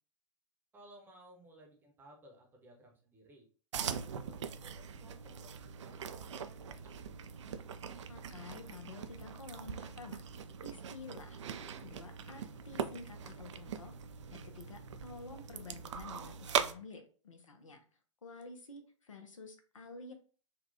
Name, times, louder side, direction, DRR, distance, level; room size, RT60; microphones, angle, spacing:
voice 1, 0.7-3.5 3.7-7.0, right 1 dB, 10° right, 0 dB, 0.9 m, -59 dB
sound 1, 3.7-16.7, right 7 dB, 60° right, 0.4 m, -41 dB
voice 2, 8.1-10.2 10.6-14.0 14.3-17.8 18.2-20.1, left 3 dB, 75° left, 6 dB, 0.8 m, -50 dB
3.9 x 2.3 x 2.6 m, 0.39 s
figure-of-eight pair, 105°, 17 cm